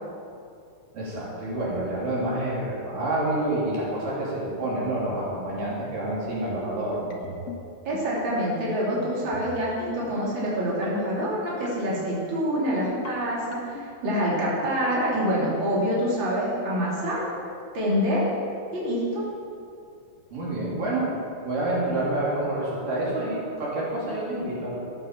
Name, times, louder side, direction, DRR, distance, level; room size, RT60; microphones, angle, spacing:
voice 1, 0.9-7.1 20.3-21.1 21.4-24.8, right 1 dB, 85° right, -6 dB, 4.7 m, -28 dB
sound 1, 7.1-7.6 7.9-8.2 9.0-9.5 9.8-10.1 10.8-11.2 11.7-12.0 12.7-13.1 13.5-13.9, left 5 dB, 60° left, 2.4 m, -37 dB
voice 2, 7.9-17.2 17.7-18.3 18.7-19.3, equal, 35° right, -7 dB, 3.9 m, -26 dB
13.0 x 8.9 x 7.3 m, 2.5 s
omnidirectional pair, 3.7 m